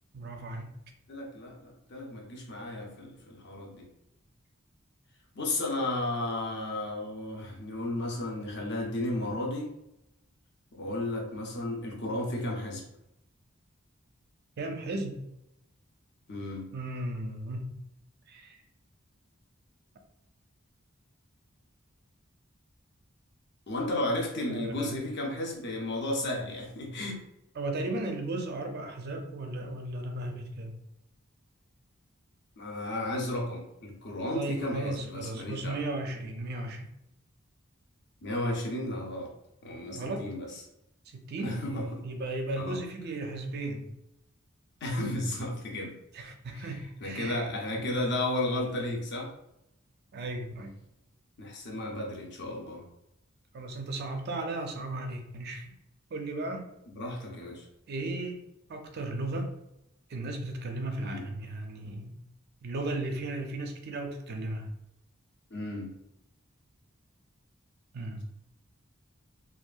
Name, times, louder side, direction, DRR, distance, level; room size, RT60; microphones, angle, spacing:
voice 1, 0.1-0.7 14.6-15.2 16.7-17.7 18.3-18.6 24.4-25.0 27.6-30.7 34.3-36.9 39.9-40.3 41.1-41.6 42.0-43.9 46.1-47.5 50.1-50.7 53.5-55.7 56.1-56.7 57.9-58.4 58.7-59.5 60.1-62.2 62.6-64.7 67.9-68.2, right 2 dB, 50° right, 4 dB, 0.4 m, -35 dB
voice 2, 1.1-3.9 5.3-9.7 10.7-12.8 16.3-16.6 23.7-27.2 32.6-35.8 38.2-39.3 39.6-40.5 41.4-41.9 42.6-42.8 44.8-45.9 46.5-46.7 47.0-49.3 51.4-52.9 56.9-57.6 61.0-61.2 65.5-65.9, left 1 dB, 55° left, 0 dB, 0.6 m, -33 dB
2.7 x 2.4 x 2.3 m, 0.83 s
head